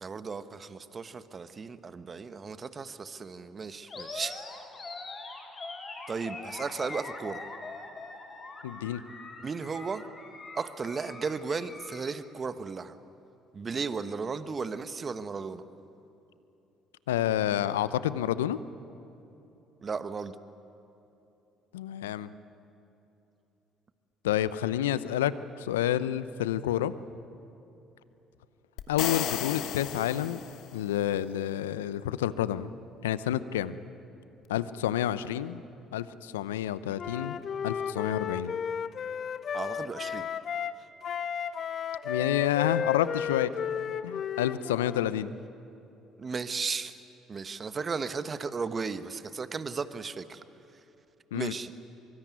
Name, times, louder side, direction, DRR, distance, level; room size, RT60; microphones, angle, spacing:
voice 1, 0.0-4.4 6.1-7.4 9.4-10.0 10.5-13.0 13.5-15.6 19.8-20.3 39.5-40.3 46.2-47.0 47.3-50.4 51.3-51.7, right 5 dB, 35° right, 12 dB, 1.4 m, -35 dB
Animal, 3.9-12.0, left 3 dB, 35° left, 5.6 m, -43 dB
voice 2, 8.6-9.0 17.1-18.6 21.7-22.3 24.2-26.9 28.9-30.4 30.7-32.7 33.0-33.8 34.5-35.6 35.9-37.4 37.6-38.5 42.0-43.5 44.0-45.3 51.3-51.5, left 11 dB, 85° left, 16 dB, 0.7 m, -29 dB
sound 1, 28.8-30.9, left 11 dB, 65° left, 1.4 m, -34 dB
Wind instrument woodwind instrument, 37.0-40.8 41.0-45.1, left 8 dB, 50° left, 0.9 m, -33 dB
23.5 x 23.5 x 9.4 m, 3.0 s
hypercardioid pair, 55°, 0 cm